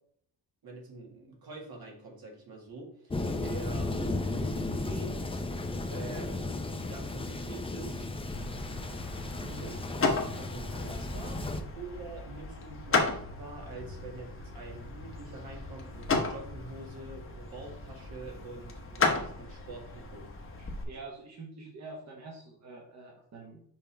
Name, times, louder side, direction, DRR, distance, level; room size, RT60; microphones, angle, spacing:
voice 1, 0.6-3.9 4.4-5.4 5.9-8.1 9.4-11.4 11.7-20.3, right 2 dB, 65° right, 0 dB, 2.0 m, -45 dB
Thunder, 3.1-11.6, left 2 dB, 15° left, 0.5 m, -34 dB
sound 1, 8.3-20.8, left 3 dB, 35° left, 1.0 m, -35 dB
voice 2, 20.6-23.6, right 3 dB, 45° right, -1 dB, 1.3 m, -46 dB
6.0 x 5.2 x 3.4 m, 0.63 s
wide cardioid pair, 150°, 39 cm